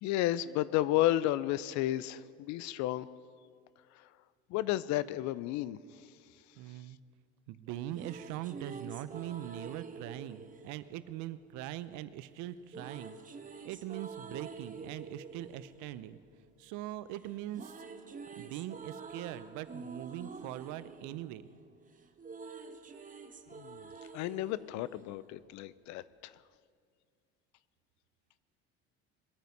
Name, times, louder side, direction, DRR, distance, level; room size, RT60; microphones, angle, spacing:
voice 1, 0.0-3.1 3.9-4.1 4.5-6.1 23.5-23.9 24.1-26.3, left 14 dB, 60° left, 18 dB, 0.6 m, -32 dB
voice 2, 6.6-7.0 7.5-13.2 13.6-16.2 16.6-17.8 18.3-21.5, right 13 dB, 65° right, 14 dB, 0.7 m, -42 dB
sound 1, 7.7-11.8 12.7-16.9 17.2-25.7, right 4 dB, 25° right, 1.1 m, -48 dB
21.5 x 9.1 x 5.5 m, 2.1 s
hypercardioid pair, 80°, 32 cm